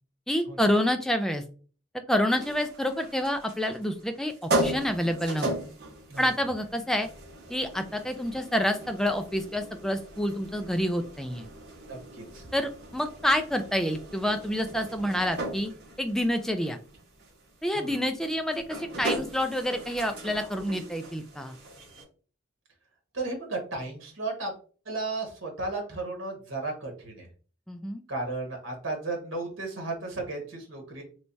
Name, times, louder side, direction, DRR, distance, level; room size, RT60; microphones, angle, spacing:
voice 1, 0.3-1.4 2.1-5.5 6.2-7.1 7.5-11.5 12.5-15.7 16.0-16.8 17.6-21.5 27.7-28.0, equal, 5° left, 6 dB, 0.3 m, -28 dB
sound 1, 2.3-22.0, right 1 dB, 55° right, 1.1 m, -37 dB
voice 2, 11.8-12.5 17.7-18.0 23.1-24.5 24.8-27.3 28.1-31.0, right 2 dB, 90° right, 2 dB, 1.1 m, -34 dB
3.3 x 3.1 x 2.6 m, 0.40 s
head